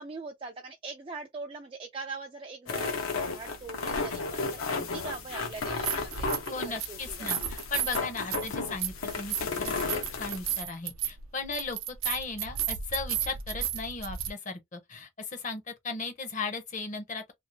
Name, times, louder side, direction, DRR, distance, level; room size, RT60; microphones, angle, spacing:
voice 1, 0.0-6.2 6.5-7.5, right 3 dB, 25° right, 0.3 m, -42 dB
sound 1, 2.7-10.6, left 4 dB, 80° left, 0.8 m, -34 dB
sound 2, 3.9-4.0 5.6-6.5 6.8-14.3, right 9 dB, 75° right, 0.5 m, -34 dB
voice 2, 6.5-17.2, left 4 dB, 35° left, 0.7 m, -37 dB
2.6 x 2.4 x 2.7 m
head